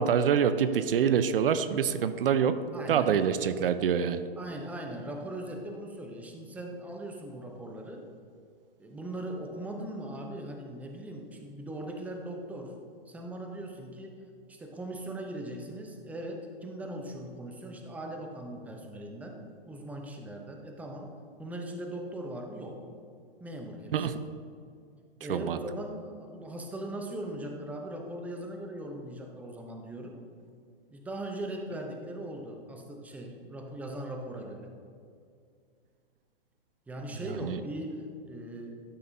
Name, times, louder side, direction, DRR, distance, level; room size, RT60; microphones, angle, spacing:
voice 1, 0.0-2.6 2.9-4.2 23.9-24.2 25.3-25.6 37.4-37.6, right 7 dB, 65° right, 12 dB, 0.5 m, -26 dB
voice 2, 2.7-3.3 4.4-8.1 8.8-12.8 13.1-14.2 14.5-19.4 19.7-21.1 21.4-22.8 23.4-24.1 25.2-30.2 30.9-34.7 36.9-38.8, right 1 dB, 5° right, 2 dB, 0.7 m, -39 dB
12.0 x 5.7 x 2.7 m, 2.2 s
hypercardioid pair, 120°, 30 cm